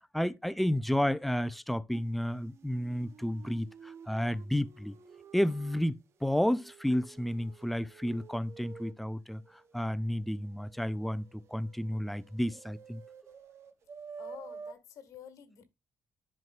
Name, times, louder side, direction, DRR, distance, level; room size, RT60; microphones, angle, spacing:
voice 1, 0.1-5.0 5.3-9.4 9.7-13.0, equal, ahead, 0.4 m, -31 dB
sound 1, 1.9-2.0 2.3-5.8 6.1-8.9 9.3-14.7, right 5 dB, 55° right, 0.9 m, -51 dB
voice 2, 14.2-15.6, left 8 dB, 75° left, 1.5 m, -49 dB
10.5 x 4.6 x 2.4 m
cardioid pair, 160°, 6 cm